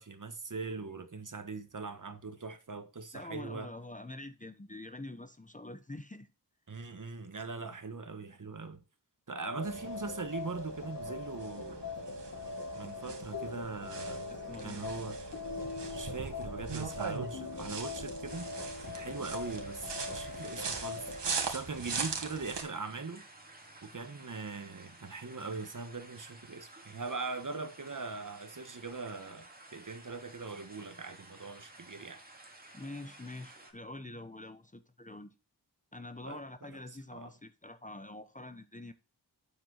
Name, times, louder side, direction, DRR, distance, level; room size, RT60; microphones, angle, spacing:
voice 1, 0.0-3.7 6.7-8.8 9.3-11.9 12.7-14.3 14.6-15.2 15.9-18.5 18.9-21.1 21.5-23.3 23.8-32.2 36.2-36.8 37.1-37.3, right 4 dB, 50° right, 1.5 m, -41 dB
voice 2, 3.1-6.3 14.3-14.8 32.7-35.3 35.9-38.9, left 2 dB, 20° left, 0.9 m, -45 dB
sound 1, 9.4-21.2, left 4 dB, 40° left, 1.8 m, -41 dB
sound 2, 9.6-22.6, right 5 dB, 85° right, 2.1 m, -41 dB
sound 3, 18.3-33.7, right 2 dB, 20° right, 2.4 m, -54 dB
9.1 x 7.6 x 4.0 m
wide cardioid pair, 85°, 41 cm